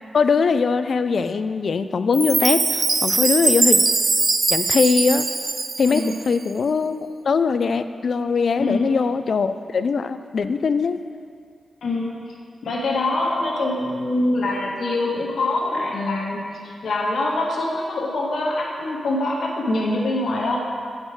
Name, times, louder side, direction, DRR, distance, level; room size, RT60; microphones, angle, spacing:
voice 1, 0.1-3.8 4.5-5.3 5.8-6.9 7.2-11.0, left 5 dB, 60° left, 11 dB, 0.3 m, -21 dB
Chime, 2.1-6.4, right 3 dB, 40° right, 0.4 m, -21 dB
voice 2, 5.8-6.2 8.6-8.9 11.8-12.1 12.6-20.6, left 2 dB, 75° left, -2 dB, 1.3 m, -24 dB
8.0 x 5.3 x 4.8 m, 2.2 s
cardioid pair, 80°, 0 cm